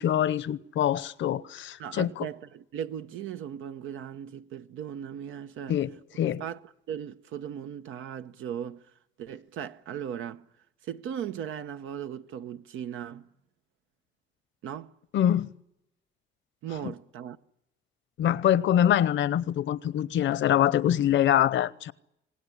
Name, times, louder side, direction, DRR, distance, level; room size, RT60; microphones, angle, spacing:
voice 1, 0.0-2.3 5.7-6.4 15.1-15.5 16.8-16.9 18.2-21.9, left 11 dB, 70° left, 0.9 m, -24 dB
voice 2, 1.8-5.8 6.4-6.6 6.9-8.8 9.2-10.4 10.9-13.3 14.6-14.9 16.6-17.4, right 9 dB, 90° right, 1.0 m, -37 dB
26.5 x 19.0 x 9.8 m
cardioid pair, 90°, 20 cm